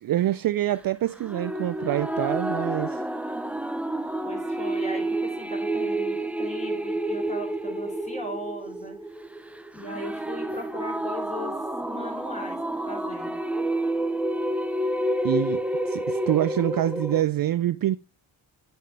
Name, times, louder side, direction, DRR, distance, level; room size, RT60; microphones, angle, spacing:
voice 1, 0.0-3.1 15.2-18.0, right 13 dB, 50° right, 0.5 m, -26 dB
sound 1, 1.2-17.2, right 1 dB, 5° right, 0.6 m, -29 dB
voice 2, 4.2-9.0 9.7-11.5 11.8-12.6 12.9-13.4, left 1 dB, 15° left, 3.7 m, -38 dB
8.1 x 6.5 x 3.3 m
supercardioid pair, 55°, 47 cm